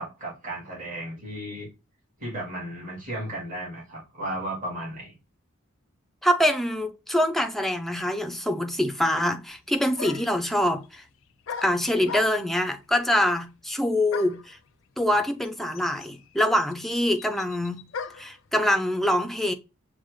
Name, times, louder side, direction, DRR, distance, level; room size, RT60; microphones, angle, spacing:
voice 1, 0.0-1.7 2.2-5.2, right 1 dB, 40° right, 1.9 m, -34 dB
voice 2, 6.2-11.0 11.6-14.6 15.0-17.9 18.2-19.5, left 1 dB, ahead, 0.4 m, -25 dB
sound 1, 9.5-9.6 10.0-10.4 11.5-12.6 14.1-14.5 15.4-15.5 15.7-18.4, left 6 dB, 70° left, 0.4 m, -37 dB
6.0 x 2.1 x 3.1 m
head